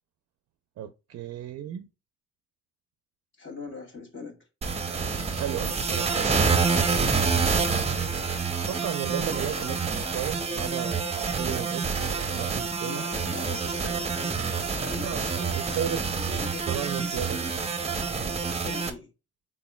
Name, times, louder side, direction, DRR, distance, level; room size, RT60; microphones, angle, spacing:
voice 1, 0.8-1.9 5.4-6.4 8.6-13.0 15.0-16.0 16.7-17.4 18.2-18.4, right 10 dB, 55° right, 0.5 m, -34 dB
voice 2, 3.4-4.4 7.7-8.1 9.5-9.8 12.8-16.7 17.0-17.5 18.6-19.1, left 3 dB, 40° left, 1.7 m, -42 dB
sound 1, 4.6-18.9, right 5 dB, 20° right, 0.7 m, -27 dB
4.1 x 3.7 x 2.2 m
cardioid pair, 90°, 30 cm